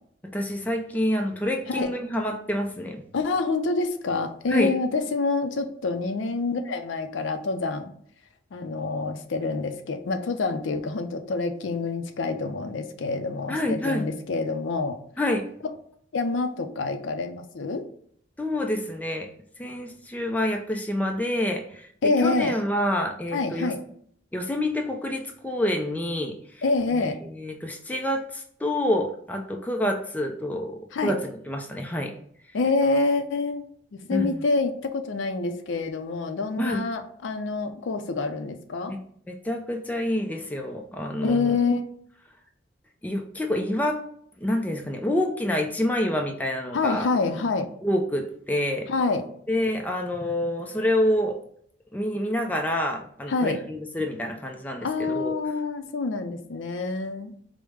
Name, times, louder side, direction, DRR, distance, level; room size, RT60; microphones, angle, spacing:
voice 1, 0.3-3.0 4.5-4.7 13.5-14.0 15.2-15.4 18.4-19.3 19.6-21.9 22.2-23.7 24.3-26.6 26.9-32.1 34.1-34.4 36.6-36.8 39.3-41.6 43.0-44.0 44.4-47.1 47.8-48.9 49.5-51.4 51.9-55.3, left 1 dB, 10° left, 3 dB, 0.4 m, -27 dB
voice 2, 3.1-7.9 8.5-15.0 16.1-17.9 22.0-22.5 23.3-23.8 26.6-27.2 30.9-31.2 32.5-33.6 33.9-38.9 41.2-41.8 46.7-47.7 48.9-49.2 53.3-53.6 54.8-57.3, left 3 dB, 85° left, 8 dB, 0.4 m, -26 dB
4.8 x 2.1 x 3.2 m, 0.63 s
head